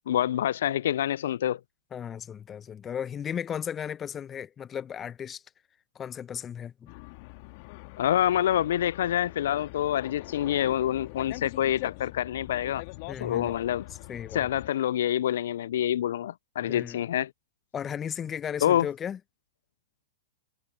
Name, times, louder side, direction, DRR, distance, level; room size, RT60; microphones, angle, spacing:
voice 1, 0.1-1.6 8.0-12.8 13.2-13.8 14.3-17.3 18.6-18.9, left 11 dB, 65° left, 0.4 m, -26 dB
voice 2, 1.9-5.4 5.9-6.9 13.1-13.6 14.1-14.5 16.6-17.0 17.7-19.2, left 8 dB, 25° left, 0.9 m, -35 dB
sound 1, 6.9-14.7, left 26 dB, 50° left, 1.9 m, -43 dB
hypercardioid pair, 105°, 0 cm